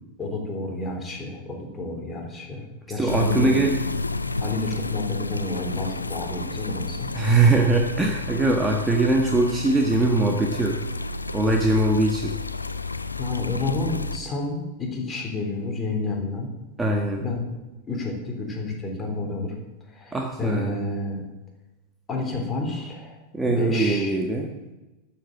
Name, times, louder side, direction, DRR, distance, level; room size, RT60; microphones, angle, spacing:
voice 1, 0.0-3.6 4.4-7.1 13.2-16.5 17.2-17.5 17.9-19.5 19.9-21.2 22.1-23.2 23.4-24.2, left 2 dB, 20° left, 1 dB, 3.4 m, -30 dB
voice 2, 3.0-3.7 7.1-10.8 11.3-12.3 16.8-17.2 20.1-20.8 23.3-24.5, right 2 dB, 10° right, 1 dB, 1.4 m, -21 dB
sound 1, 3.1-14.2, left 3 dB, 80° left, 0.6 m, -31 dB
13.0 x 7.5 x 7.4 m, 1.0 s
figure-of-eight pair, 90°, 0 cm